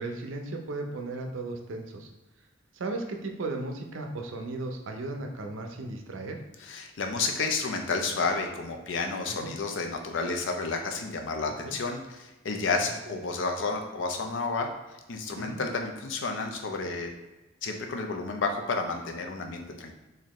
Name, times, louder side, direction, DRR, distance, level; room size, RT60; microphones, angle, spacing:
voice 1, 0.0-2.1 2.7-6.4 9.3-9.5 11.6-11.7 13.1-13.2 15.4-15.6, right 2 dB, 80° right, 3 dB, 0.5 m, -36 dB
voice 2, 6.6-14.7 15.1-17.1 17.6-19.9, left 4 dB, 70° left, 3 dB, 0.5 m, -31 dB
4.1 x 2.6 x 3.0 m, 1.1 s
head